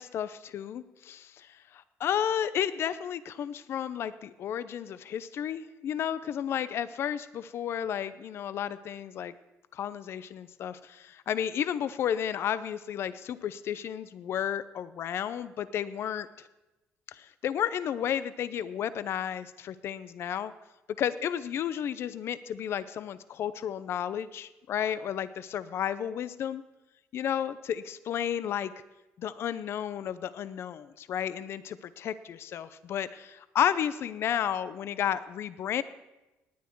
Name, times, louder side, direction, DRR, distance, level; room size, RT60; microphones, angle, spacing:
voice 1, 0.0-9.3 9.7-16.3 17.1-20.5 21.0-26.6 27.1-28.7 29.2-35.8, left 9 dB, 55° left, 15 dB, 0.6 m, -32 dB
18.5 x 9.4 x 4.6 m, 1.0 s
cardioid pair, 120°, 5 cm